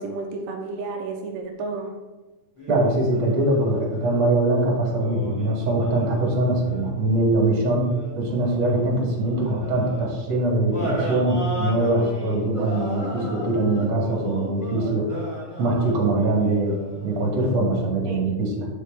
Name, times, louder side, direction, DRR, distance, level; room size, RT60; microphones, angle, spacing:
voice 1, 0.0-1.9 18.1-18.2, right 3 dB, 85° right, 1 dB, 2.6 m, -31 dB
sound 1, 2.6-4.3 4.9-10.1 10.7-17.5, equal, 15° left, 1.3 m, -35 dB
voice 2, 2.7-7.9 8.2-15.2 15.6-18.7, right 2 dB, 40° right, -2 dB, 2.5 m, -22 dB
9.3 x 6.6 x 3.3 m, 1.1 s
omnidirectional pair, 3.8 m